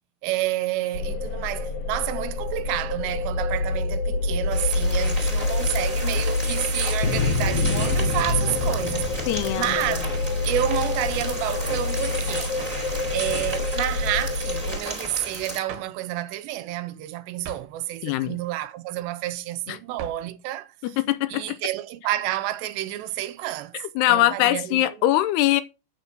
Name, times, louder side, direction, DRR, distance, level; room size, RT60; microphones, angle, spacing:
voice 1, 0.2-9.1 9.5-10.1 10.5-12.6 13.1-21.0 21.3-24.9, right 14 dB, 90° right, 3.0 m, -30 dB
sound 1, 0.9-14.8, left 3 dB, 60° left, 1.5 m, -26 dB
sound 2, 4.5-15.6, right 1 dB, 15° right, 1.7 m, -34 dB
sound 3, 6.2-6.6 7.7-7.9 8.6-8.9 10.1-10.4 12.6-12.9 15.7-16.0 17.4-17.8 20.0-20.3, right 6 dB, 65° right, 2.8 m, -41 dB
voice 2, 9.3-10.0 18.0-18.4 19.7-19.8 20.8-21.4 23.7-25.6, left 14 dB, 80° left, 2.6 m, -22 dB
9.1 x 7.4 x 6.1 m
omnidirectional pair, 4.9 m